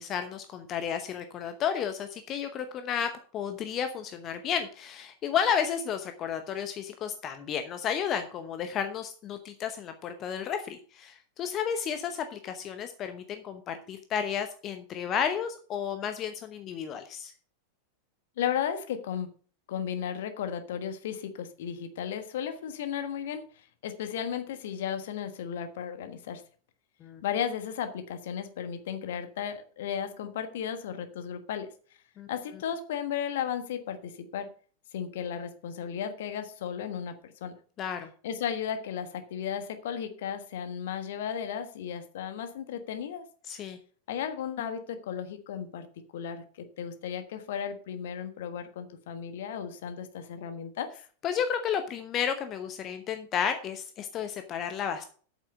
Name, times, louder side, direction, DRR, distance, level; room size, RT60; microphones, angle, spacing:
voice 1, 0.0-17.3 27.0-27.2 32.2-32.3 37.8-38.1 43.4-43.8 51.2-55.0, left 8 dB, 30° left, 8 dB, 0.9 m, -32 dB
voice 2, 18.4-19.3 19.7-26.4 27.2-31.7 32.3-34.5 34.9-37.5 38.2-43.2 44.1-45.9 46.1-50.9, left 8 dB, 55° left, 8 dB, 1.3 m, -34 dB
8.6 x 7.3 x 5.4 m, 0.43 s
figure-of-eight pair, 90°, 0 cm